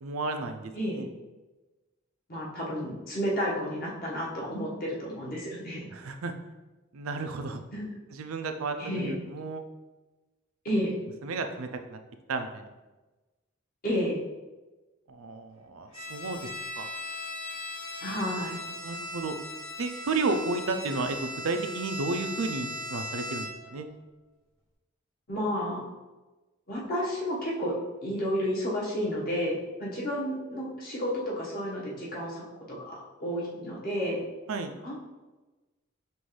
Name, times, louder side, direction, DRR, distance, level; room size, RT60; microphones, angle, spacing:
voice 1, 0.0-1.1 5.9-6.3 6.9-7.6 8.1-9.6 11.2-12.0 12.3-12.7 15.1-16.5 16.8-16.9 18.0-19.3 19.8-23.9 34.5-34.7, right 3 dB, 80° right, 7 dB, 0.5 m, -33 dB
voice 2, 0.7-1.0 2.3-5.8 7.7-7.8 8.8-9.2 10.6-10.9 13.8-14.2 18.0-18.6 25.3-25.8 26.7-27.7 28.0-32.4 32.7-34.2 34.8-34.9, equal, 45° left, -5 dB, 1.3 m, -31 dB
Bowed string instrument, 15.9-23.8, left 1 dB, 85° left, 1.3 m, -38 dB
5.5 x 2.6 x 3.2 m, 1.1 s
head